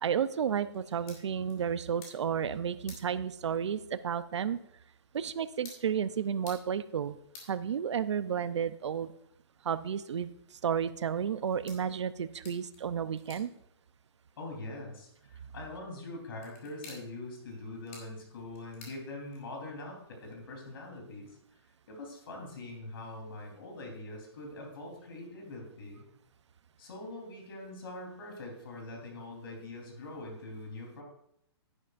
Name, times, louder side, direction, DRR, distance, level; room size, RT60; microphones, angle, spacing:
voice 1, 0.0-4.6 5.1-7.2 7.5-9.1 9.6-13.5, right 8 dB, 85° right, 15 dB, 0.6 m, -32 dB
sound 1, 0.7-19.7, left 3 dB, 30° left, 2.5 m, -57 dB
voice 2, 14.4-21.4 21.9-26.0 26.8-31.0, left 2 dB, 55° left, 1 dB, 3.6 m, -43 dB
11.0 x 10.5 x 2.5 m, 0.74 s
hypercardioid pair, 170°, 14 cm